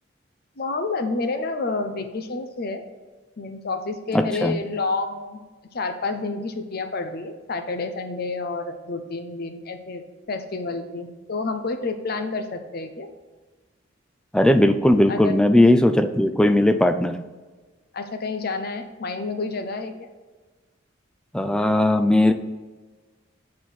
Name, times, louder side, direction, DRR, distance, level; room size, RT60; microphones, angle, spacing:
voice 1, 0.6-2.8 3.4-5.4 5.7-13.1 15.1-15.3 17.9-20.1, left 3 dB, 55° left, 7 dB, 0.7 m, -29 dB
voice 2, 4.1-4.6 14.3-17.2 21.3-22.3, left 1 dB, 5° left, 8 dB, 0.4 m, -18 dB
8.2 x 4.2 x 4.4 m, 1.3 s
head